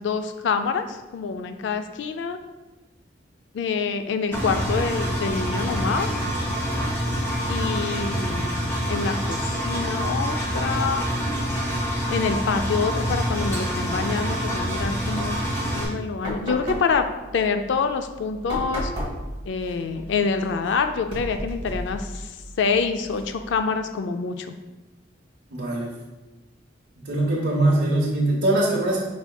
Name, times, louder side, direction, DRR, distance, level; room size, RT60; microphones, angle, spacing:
voice 1, 0.0-2.4 3.5-6.2 7.5-11.1 12.1-15.4 15.7-17.1 17.3-18.9 19.5-24.6, left 5 dB, 75° left, 8 dB, 0.3 m, -26 dB
Engine, 4.3-15.8, equal, 15° left, 1.0 m, -26 dB
sound 1, 16.2-23.7, equal, 30° right, 1.3 m, -35 dB
voice 2, 25.5-25.9 27.0-29.0, right 1 dB, 75° right, -5 dB, 0.9 m, -22 dB
5.5 x 4.2 x 2.3 m, 1.2 s
head